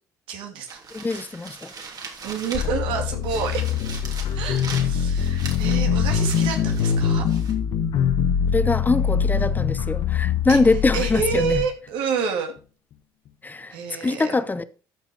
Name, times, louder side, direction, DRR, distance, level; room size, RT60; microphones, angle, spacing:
voice 1, 0.3-0.8 2.2-3.7 4.3-7.3 9.4-9.5 10.5-10.6 10.9-12.6 13.7-14.3, right 6 dB, 75° right, 2.6 m, -28 dB
sound 1, 0.7-2.9 3.2-7.5, right 4 dB, 50° right, 3.1 m, -40 dB
voice 2, 0.9-1.7 8.5-11.6 13.4-13.7 14.0-14.6, left 3 dB, 20° left, 0.9 m, -23 dB
sound 2, 2.5-11.6, left 7 dB, 65° left, 1.2 m, -23 dB
13.5 x 5.4 x 5.0 m
supercardioid pair, 70°, 9 cm